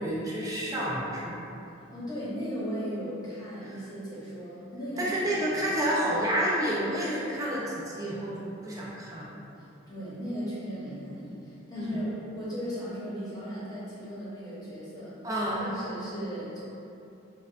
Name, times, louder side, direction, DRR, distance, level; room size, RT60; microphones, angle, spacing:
voice 1, 0.0-1.4 3.6-3.7 5.0-9.4 11.8-12.0 15.2-15.8, right 1 dB, 15° right, -6 dB, 0.6 m, -30 dB
voice 2, 1.9-5.6 9.6-15.2 15.6-16.6, equal, 20° left, -9 dB, 1.0 m, -37 dB
6.3 x 2.4 x 2.5 m, 2.8 s
head